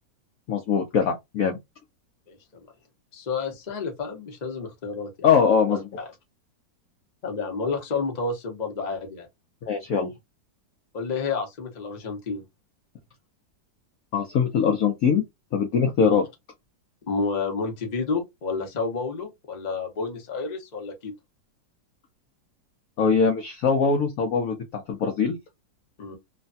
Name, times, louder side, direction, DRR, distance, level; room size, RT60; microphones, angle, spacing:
voice 1, 0.5-1.6 5.2-5.8 9.6-10.1 14.1-15.2 15.5-16.3 23.0-25.4, left 6 dB, 65° left, 0.9 m, -22 dB
voice 2, 2.3-2.6 3.1-5.1 5.7-6.1 7.2-9.3 10.9-12.4 16.0-16.2 17.1-21.1 26.0-26.2, left 4 dB, 35° left, 0.7 m, -30 dB
3.2 x 2.2 x 2.6 m
omnidirectional pair, 2.0 m